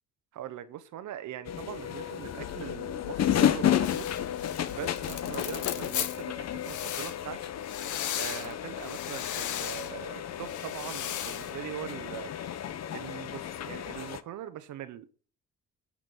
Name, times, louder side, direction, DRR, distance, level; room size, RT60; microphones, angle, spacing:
voice 1, 0.3-4.1 4.7-7.4 8.2-12.3 12.9-15.1, right 11 dB, 80° right, 1.0 m, -41 dB
sound 1, 1.4-14.2, left 10 dB, 60° left, 0.9 m, -32 dB
sound 2, 3.8-6.2 6.6-7.2 7.6-8.5 8.8-9.9 10.4-11.5, left 10 dB, 75° left, 1.1 m, -36 dB
11.5 x 7.3 x 5.3 m
cardioid pair, 90°, 30 cm